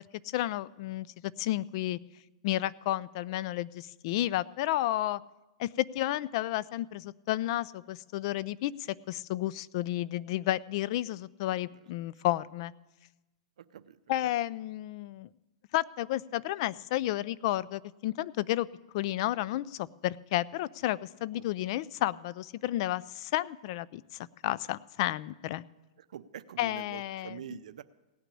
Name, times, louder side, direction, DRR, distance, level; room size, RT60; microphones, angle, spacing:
voice 1, 0.0-2.0 2.4-5.2 5.6-12.7 14.1-15.3 15.7-18.7 18.9-24.0 24.4-25.6 26.6-27.4, left 15 dB, 45° left, 20 dB, 0.4 m, -32 dB
voice 2, 13.6-14.0 14.2-14.3 21.3-21.5 26.0-27.8, right 9 dB, 75° right, 12 dB, 0.6 m, -45 dB
17.0 x 6.0 x 9.8 m, 1.1 s
hypercardioid pair, 150°, 4 cm